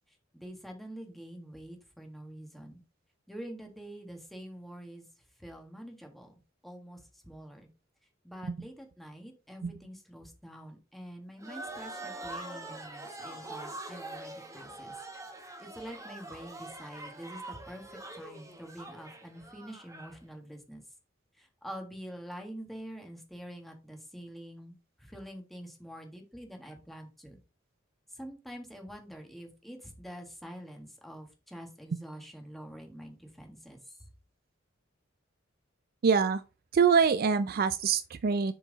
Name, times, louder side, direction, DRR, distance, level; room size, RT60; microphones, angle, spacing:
voice 1, 0.3-2.8 3.3-5.0 5.4-7.7 8.2-14.9 15.6-20.8 21.4-27.4 28.1-34.1, equal, ahead, 1.6 m, -46 dB
sound 1, 11.4-20.2, right 2 dB, 15° right, 1.5 m, -44 dB
voice 2, 36.0-36.4 36.7-38.5, right 6 dB, 50° right, 0.4 m, -25 dB
7.1 x 4.6 x 4.0 m
head